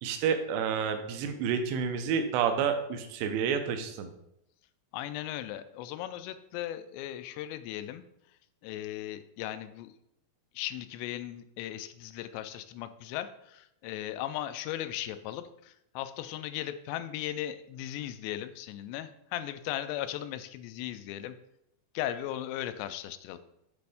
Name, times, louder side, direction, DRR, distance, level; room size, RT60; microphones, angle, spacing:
voice 1, 0.0-4.1, right 7 dB, 80° right, 6 dB, 2.7 m, -29 dB
voice 2, 4.9-10.0 10.5-21.4 21.9-23.4, left 12 dB, 90° left, 11 dB, 2.7 m, -37 dB
9.3 x 4.2 x 3.5 m, 0.80 s
omnidirectional pair, 4.8 m